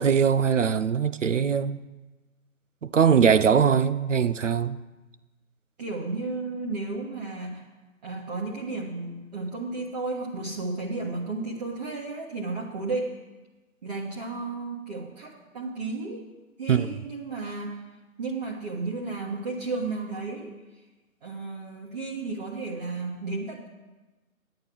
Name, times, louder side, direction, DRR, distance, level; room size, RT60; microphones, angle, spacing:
voice 1, 0.0-1.8 2.8-4.8 16.7-16.9, right 7 dB, 60° right, 0.6 m, -21 dB
voice 2, 5.8-7.7 8.0-13.2 13.8-16.3 16.6-17.8 18.2-20.5 21.2-23.7, right 3 dB, 30° right, 1.4 m, -33 dB
9.5 x 9.0 x 6.0 m
figure-of-eight pair, 150°, 43 cm